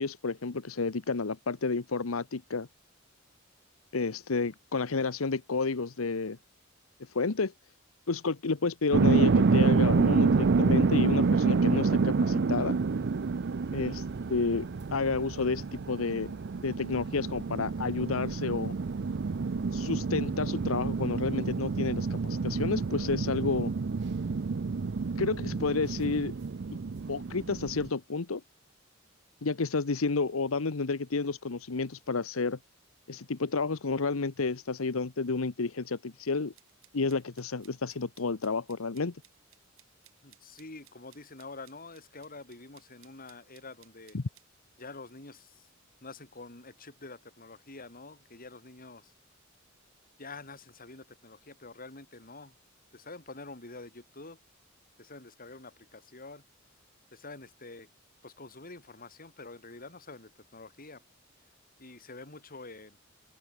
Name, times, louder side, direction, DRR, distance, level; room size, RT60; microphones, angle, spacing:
voice 1, 0.0-2.7 3.9-6.4 7.0-7.5 8.1-12.8 13.7-16.3 16.6-18.7 19.7-23.7 25.2-26.3 27.1-28.4 29.4-32.6 33.1-36.5 36.9-39.2 44.1-44.2, left 4 dB, 85° left, 0.9 m, -31 dB
sound 1, 8.9-27.9, right 4 dB, 55° right, 0.5 m, -28 dB
sound 2, 36.6-44.5, right 13 dB, 75° right, 7.2 m, -62 dB
voice 2, 40.2-44.2 44.8-45.7 46.0-49.1 50.2-52.5 52.9-54.4 55.0-56.4 57.1-57.9 58.2-61.0 61.8-63.0, left 3 dB, 45° left, 5.2 m, -47 dB
head